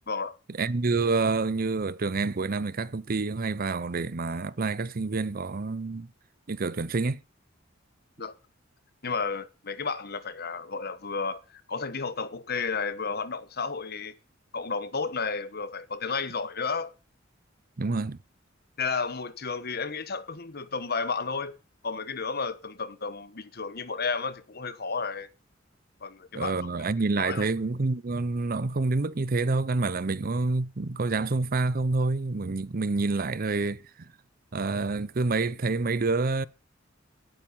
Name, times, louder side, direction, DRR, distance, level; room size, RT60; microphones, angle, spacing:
voice 1, 0.1-0.4 8.2-8.3 9.0-14.2 14.5-16.9 18.8-21.6 21.8-25.3 26.0-26.6 27.2-27.5, left 4 dB, 55° left, 1.3 m, -32 dB
voice 2, 0.6-6.1 6.5-7.2 17.8-18.2 26.3-33.8 34.5-36.5, right 3 dB, 50° right, 0.7 m, -27 dB
17.5 x 9.1 x 5.5 m
head